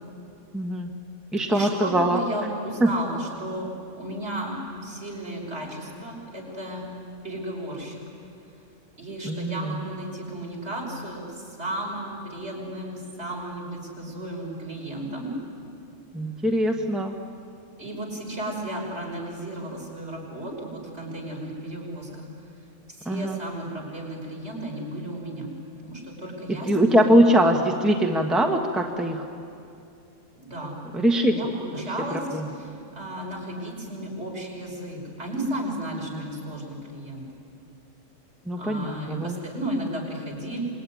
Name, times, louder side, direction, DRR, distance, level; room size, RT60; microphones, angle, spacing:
voice 1, 0.5-0.9 1.3-2.2 2.8-2.9 9.2-9.8 16.1-17.1 23.0-23.4 26.5-29.2 30.9-31.3 32.3-32.5 36.1-36.2 38.5-39.3, right 1 dB, ahead, 2 dB, 1.5 m, -22 dB
voice 2, 1.5-6.9 7.2-8.0 9.0-15.4 17.8-22.3 22.9-25.5 25.8-27.4 30.3-30.8 31.2-37.2 38.6-40.6, right 1 dB, 55° right, -1 dB, 6.0 m, -34 dB
27.5 x 22.0 x 9.5 m, 2.5 s
omnidirectional pair, 1.3 m